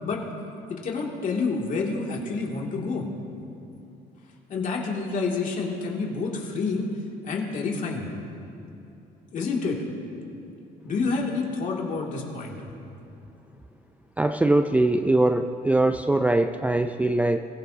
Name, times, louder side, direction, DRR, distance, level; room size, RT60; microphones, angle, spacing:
voice 1, 0.7-3.1 4.5-6.9 7.2-8.1 9.3-9.8 10.8-12.6, left 4 dB, 50° left, -1 dB, 2.5 m, -28 dB
voice 2, 14.2-17.4, right 2 dB, 10° right, 7 dB, 0.4 m, -22 dB
22.5 x 15.5 x 2.8 m, 2.9 s
cardioid pair, 110°, 17 cm